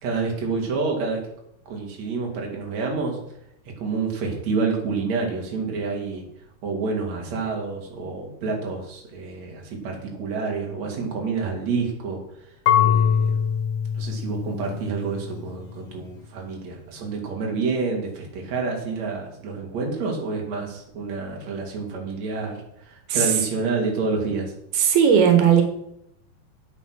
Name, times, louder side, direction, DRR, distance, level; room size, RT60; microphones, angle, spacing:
voice 1, 0.0-1.2 1.7-3.2 3.8-6.2 6.6-12.2 12.8-13.5 13.9-24.5, right 4 dB, 50° right, 0 dB, 3.4 m, -28 dB
Marimba xylophone / Wood, 12.7-15.5, left 8 dB, 80° left, 3.2 m, -23 dB
voice 2, 24.7-25.6, right 8 dB, 85° right, 6 dB, 3.3 m, -17 dB
9.1 x 9.1 x 6.2 m, 0.77 s
omnidirectional pair, 4.3 m